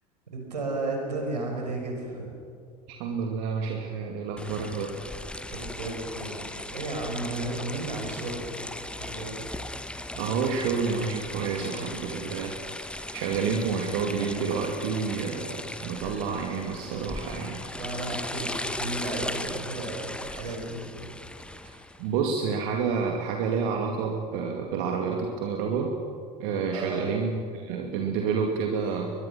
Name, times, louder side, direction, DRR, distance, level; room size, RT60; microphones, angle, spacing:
voice 1, 0.3-2.3 5.5-8.5 9.0-9.4 17.8-21.1 26.7-27.2, right 2 dB, 80° right, 2 dB, 5.4 m, -34 dB
voice 2, 2.9-5.0 10.1-12.6 13.1-17.6 21.6-26.0 26.4-29.1, right 5 dB, 55° right, 2 dB, 2.4 m, -29 dB
sound 1, 4.4-22.1, left 1 dB, 5° left, 1.3 m, -37 dB
23.0 x 22.5 x 6.1 m, 2.6 s
figure-of-eight pair, 70°, 21 cm